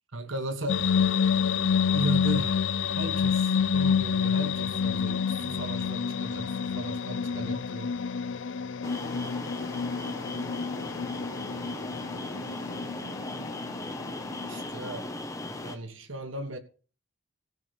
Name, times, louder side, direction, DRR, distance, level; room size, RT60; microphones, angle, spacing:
voice 1, 0.1-0.9 1.9-2.6 2.9-7.9 14.5-15.2 15.6-16.6, right 1 dB, 85° right, 1.6 m, -36 dB
sound 1, 0.7-14.7, left 6 dB, 70° left, 0.5 m, -28 dB
sound 2, 8.8-15.8, left 2 dB, 15° left, 1.2 m, -37 dB
voice 2, 11.3-13.3 15.1-15.9, right 2 dB, 65° right, 3.2 m, -54 dB
15.5 x 5.3 x 8.2 m
head